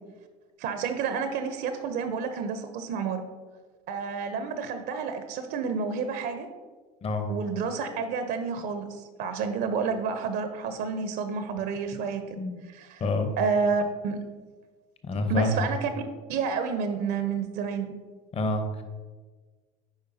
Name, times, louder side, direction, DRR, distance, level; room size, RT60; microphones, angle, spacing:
voice 1, 0.6-3.2 3.9-6.5 7.3-12.4 12.8-13.0 13.4-14.2 15.3-15.9 16.3-17.9, right 5 dB, 50° right, 8 dB, 0.7 m, -30 dB
voice 2, 13.0-13.3 15.0-15.6 18.3-18.8, left 2 dB, 30° left, 7 dB, 0.9 m, -27 dB
8.8 x 4.9 x 2.7 m, 1.4 s
hypercardioid pair, 80°, 21 cm